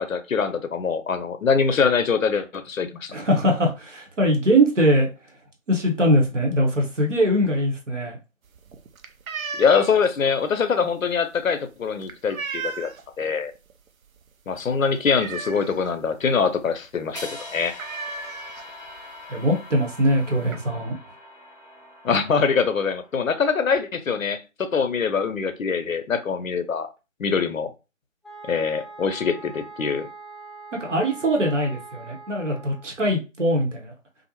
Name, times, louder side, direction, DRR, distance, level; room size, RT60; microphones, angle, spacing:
voice 1, 0.0-3.1 9.5-12.9 13.2-13.5 14.5-17.7 22.0-26.9 27.2-27.7 28.4-30.1, left 5 dB, 75° left, 0.6 m, -23 dB
voice 2, 3.1-5.1 5.7-8.2 19.3-21.0 30.8-33.9, equal, 65° right, 0.9 m, -22 dB
sound 1, 8.5-13.2 13.6-13.9 14.2-14.3 14.6-16.0 16.4-16.5 16.7-16.9 17.2-17.3 17.7-19.0 19.8-19.9 20.1-20.6, right 5 dB, 85° right, 0.5 m, -35 dB
sound 2, 17.1-23.3, left 2 dB, 30° right, 0.8 m, -42 dB
sound 3, 28.2-32.9, right 3 dB, ahead, 0.4 m, -42 dB
2.5 x 2.0 x 2.7 m
figure-of-eight pair, 170°, 40 cm